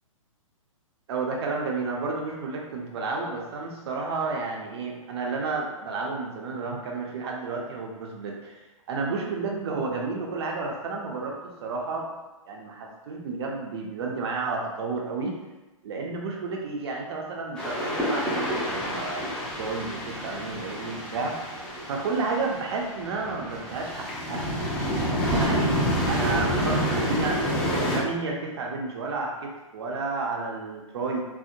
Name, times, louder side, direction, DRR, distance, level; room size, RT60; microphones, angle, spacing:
voice 1, 1.1-8.6 8.9-12.1 12.5-15.3 15.8-21.3 21.9-25.7 26.1-27.4 27.7-31.2, right 3 dB, 50° right, 0 dB, 0.4 m, -31 dB
sound 1, 17.6-28.0, equal, 5° left, 0.6 m, -28 dB
2.7 x 2.0 x 2.5 m, 1.1 s
figure-of-eight pair, 120°, 18 cm